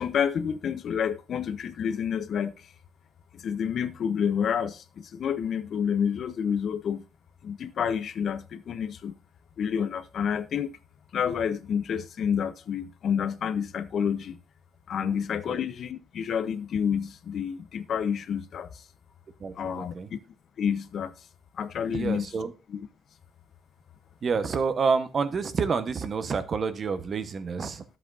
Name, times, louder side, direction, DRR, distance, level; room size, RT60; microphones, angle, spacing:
voice 1, 0.0-2.6 3.3-7.0 7.4-9.2 9.6-10.7 11.1-14.4 14.9-18.8 19.6-20.2 20.6-21.1 21.5-22.3 22.7-22.9, left 7 dB, 60° left, 0.7 m, -29 dB
voice 2, 19.4-20.1 21.9-22.5 24.2-27.8, right 5 dB, 45° right, 1.0 m, -28 dB
11.0 x 7.8 x 2.5 m
cardioid pair, 90°, 0 cm